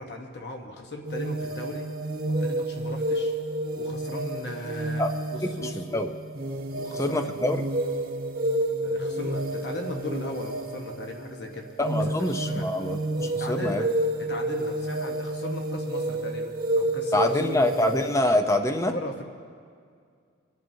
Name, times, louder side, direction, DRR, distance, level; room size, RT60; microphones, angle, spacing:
voice 1, 0.0-1.9 2.4-3.4 3.8-5.0 5.3-6.0 6.7-7.3 8.8-11.7 12.1-12.7 13.4-13.9 14.2-17.6 18.9-19.2, left 1 dB, 60° left, 2 dB, 1.1 m, -37 dB
sound 1, 1.0-18.2, right 1 dB, 50° right, 1.1 m, -30 dB
voice 2, 5.8-6.1 7.0-7.6 11.8-13.8 17.1-18.9, left 1 dB, 15° left, 6 dB, 0.5 m, -25 dB
27.5 x 10.5 x 2.7 m, 2.2 s
head